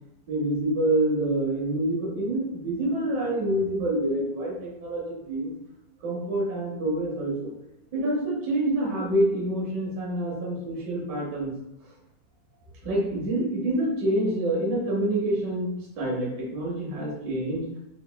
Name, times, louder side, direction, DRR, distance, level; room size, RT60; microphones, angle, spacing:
voice 1, 0.3-5.5 6.0-7.5 7.9-11.5 12.8-15.7 16.0-17.6, right 1 dB, 75° right, -5 dB, 0.9 m, -27 dB
5.1 x 3.1 x 2.2 m, 0.85 s
omnidirectional pair, 3.8 m